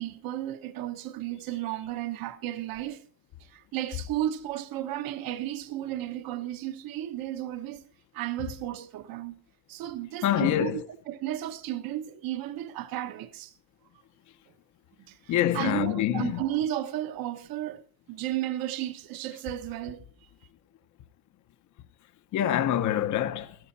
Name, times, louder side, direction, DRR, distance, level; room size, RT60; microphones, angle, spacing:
voice 1, 0.0-3.1 3.4-7.8 8.1-9.3 9.7-13.5 15.1-20.3, right 13 dB, 65° right, 1.1 m, -34 dB
voice 2, 10.2-10.8 15.3-16.4 22.3-23.6, left 11 dB, 50° left, 0.8 m, -25 dB
14.0 x 13.5 x 4.1 m
cardioid pair, 170°, 38 cm